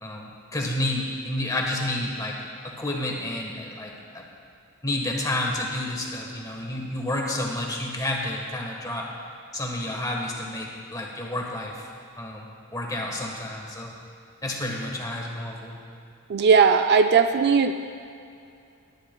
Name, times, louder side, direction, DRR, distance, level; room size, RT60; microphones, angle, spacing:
voice 1, 0.0-2.4 2.6-4.2 4.8-9.1 9.5-11.9 12.2-13.9 14.4-15.9, left 1 dB, 15° left, -1 dB, 1.3 m, -30 dB
voice 2, 16.3-17.7, right 5 dB, 45° right, 7 dB, 0.3 m, -18 dB
18.5 x 10.5 x 2.3 m, 2.5 s
head